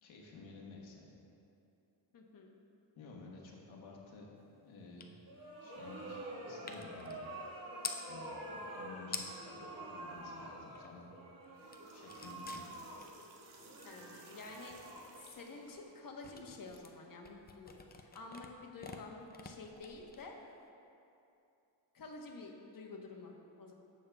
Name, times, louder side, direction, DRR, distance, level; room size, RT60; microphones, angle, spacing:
voice 1, 0.0-1.1 3.0-4.3 4.6-5.1 5.6-7.2 8.1-8.3 8.7-11.1 11.9-12.6, left 4 dB, 85° left, -1 dB, 1.4 m, -52 dB
voice 2, 2.1-2.6 13.8-20.4 21.9-23.7, left 3 dB, 45° left, 1 dB, 1.1 m, -50 dB
sound 1, 5.0-5.2 5.4-8.1 8.8-8.9 9.0-9.6 10.0-11.1 11.4-20.7, left 4 dB, 20° left, 0.5 m, -49 dB
sound 2, 5.3-16.2, right 1 dB, 45° right, 1.6 m, -48 dB
sound 3, 11.4-15.7, right 4 dB, 90° right, 1.0 m, -60 dB
16.0 x 5.6 x 2.3 m, 2.7 s
cardioid pair, 105°, 46 cm